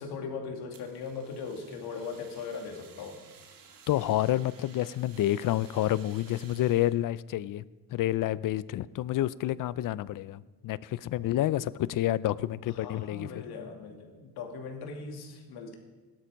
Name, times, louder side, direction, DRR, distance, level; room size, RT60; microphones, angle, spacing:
voice 1, 0.0-3.2 12.7-15.8, left 5 dB, 80° left, 3 dB, 2.6 m, -39 dB
Fire, 0.7-6.9, right 6 dB, 60° right, 2.2 m, -55 dB
voice 2, 3.9-7.6 7.9-13.4, left 14 dB, 55° left, 19 dB, 0.6 m, -29 dB
17.0 x 12.0 x 5.3 m, 1.3 s
cardioid pair, 130°, 38 cm